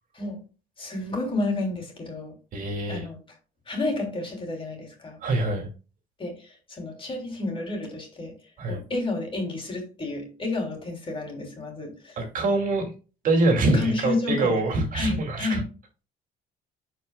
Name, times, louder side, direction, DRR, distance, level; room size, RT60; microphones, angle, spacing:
voice 1, 0.8-2.3 2.9-3.2 3.7-5.2 6.2-8.3 8.7-12.2 13.7-14.6 14.9-15.6, left 2 dB, 30° left, 2.9 m, -30 dB
voice 2, 2.5-3.1 5.2-5.7 8.6-8.8 12.2-12.9 13.2-15.6, right 2 dB, 55° right, 2.3 m, -24 dB
11.0 x 4.6 x 2.2 m
cardioid pair, 110°, 17 cm